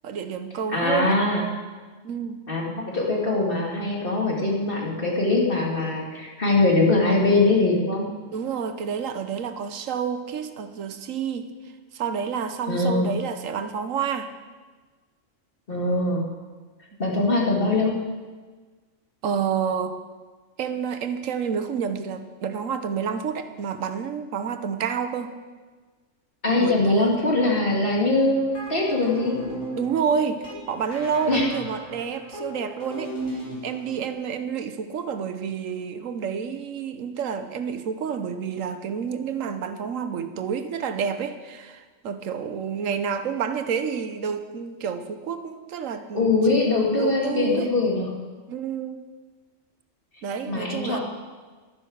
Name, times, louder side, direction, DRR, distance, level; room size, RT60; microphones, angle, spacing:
voice 1, 0.0-1.2 2.0-2.4 8.3-11.5 11.9-14.3 19.2-20.0 20.6-25.3 26.5-27.1 29.8-46.3 47.0-47.7 48.5-49.0 50.2-51.0, right 7 dB, 80° right, 10 dB, 1.2 m, -29 dB
voice 2, 0.7-1.4 2.5-8.1 12.7-13.1 15.7-16.2 17.0-17.9 26.4-29.3 31.3-31.5 46.1-48.1 50.5-51.0, left 2 dB, 45° left, -2 dB, 2.5 m, -22 dB
sound 1, 28.3-34.1, right 1 dB, 65° left, 3.5 m, -36 dB
12.0 x 10.0 x 6.3 m, 1.4 s
omnidirectional pair, 1.4 m